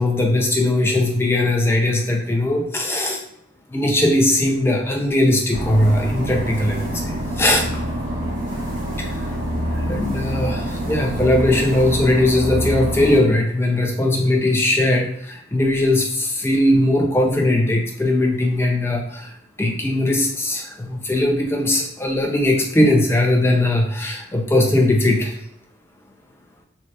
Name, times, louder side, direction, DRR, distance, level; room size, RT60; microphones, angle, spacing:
voice 1, 0.0-3.2 3.7-7.8 9.0-9.2 9.8-25.3, left 1 dB, 10° left, 1 dB, 0.3 m, -19 dB
sound 1, 5.5-13.2, equal, 65° right, 1.3 m, -26 dB
3.2 x 2.3 x 2.6 m, 0.72 s
head